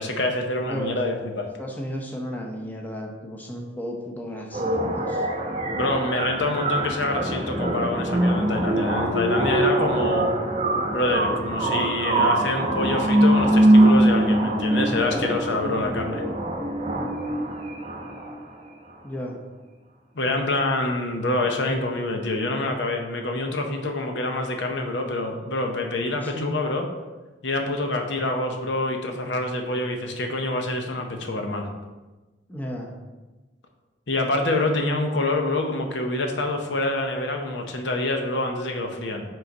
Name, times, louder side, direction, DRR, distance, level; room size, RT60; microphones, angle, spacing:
voice 1, 0.0-1.5 5.7-10.3 10.9-16.2 20.1-26.9 27.4-31.7 34.1-39.2, left 2 dB, 75° left, 3 dB, 0.8 m, -26 dB
voice 2, 0.6-1.0 1.6-5.3 15.6-16.0 19.0-19.4 26.1-26.6 32.5-32.9, equal, 10° left, 0 dB, 0.7 m, -34 dB
sound 1, 4.5-18.5, right 1 dB, 35° right, 0.8 m, -22 dB
5.5 x 3.8 x 5.3 m, 1.2 s
head